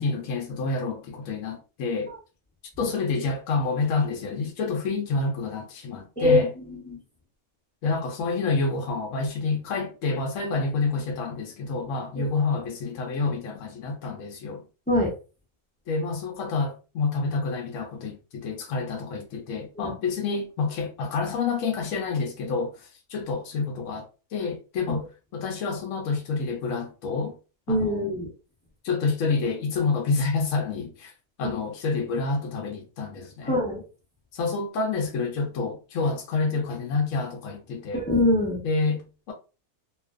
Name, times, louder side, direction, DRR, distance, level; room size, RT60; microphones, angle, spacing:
voice 1, 0.0-2.1 2.8-6.5 7.8-14.6 15.9-24.1 24.3-25.1 25.3-27.4 27.7-28.1 28.8-31.1 31.4-33.6 34.3-38.0 38.6-39.3, left 4 dB, 70° left, 0.9 m, -28 dB
voice 2, 6.2-7.0 12.1-12.3 14.9-15.1 19.8-19.9 24.9-25.0 27.7-28.3 31.4-31.5 33.5-33.8 37.9-38.6, left 1 dB, 10° left, 0.6 m, -24 dB
2.5 x 2.3 x 2.3 m
omnidirectional pair, 1.5 m